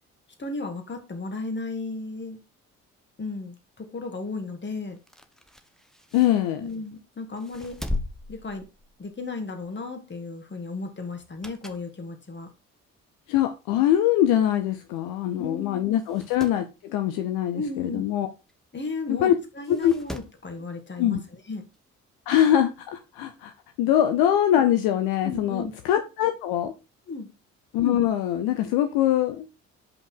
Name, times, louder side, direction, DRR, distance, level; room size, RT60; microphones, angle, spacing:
voice 1, 0.4-2.4 3.2-5.0 6.6-7.8 8.3-8.6 9.0-12.5 15.4-16.0 17.5-18.1 18.7-21.6 25.2-25.7 27.1-27.3, left 3 dB, 25° left, 2.1 m, -34 dB
sound 1, 4.9-6.9 7.4-9.2 9.6-9.8 11.1-11.9 12.4-12.5 13.4-13.5 13.7-13.8 14.0-14.1 15.0-15.1 15.5-15.6 15.9-16.6 18.5-18.6 19.6-20.4 21.7-21.8, left 1 dB, ahead, 0.9 m, -38 dB
voice 2, 6.1-6.6 13.3-18.3 19.1-19.3 19.7-19.9 21.0-21.2 22.3-23.5 23.8-26.7 27.7-29.5, left 11 dB, 65° left, 0.8 m, -23 dB
6.9 x 5.4 x 4.6 m
figure-of-eight pair, 45°, 40 cm